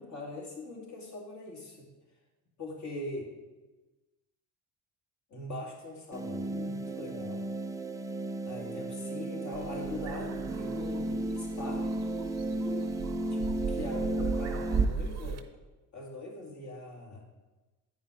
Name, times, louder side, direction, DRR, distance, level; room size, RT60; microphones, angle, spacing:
voice 1, 0.0-1.8 2.6-3.3 5.3-7.5 8.5-11.9 13.3-15.4 15.9-17.2, left 2 dB, 45° left, -1 dB, 2.5 m, -41 dB
sound 1, 6.1-14.9, right 2 dB, 10° right, 0.4 m, -34 dB
sound 2, 9.5-15.4, right 5 dB, 40° right, 0.8 m, -36 dB
9.3 x 5.4 x 4.8 m, 1.1 s
cardioid pair, 90°, 40 cm